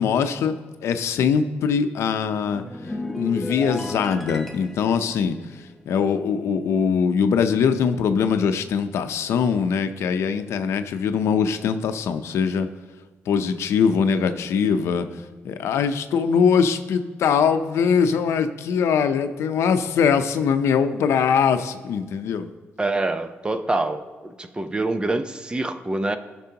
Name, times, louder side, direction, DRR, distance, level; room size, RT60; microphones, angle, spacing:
voice 1, 0.0-2.6 3.2-5.4 5.9-12.7 13.3-15.1 15.4-22.5, left 6 dB, 85° left, 9 dB, 0.6 m, -22 dB
sound 1, 2.3-6.9 7.2-7.5, left 1 dB, 5° left, 0.9 m, -35 dB
voice 2, 22.8-26.2, right 2 dB, 20° right, 9 dB, 0.7 m, -26 dB
17.5 x 6.1 x 2.9 m, 1.4 s
cardioid pair, 95°, 5 cm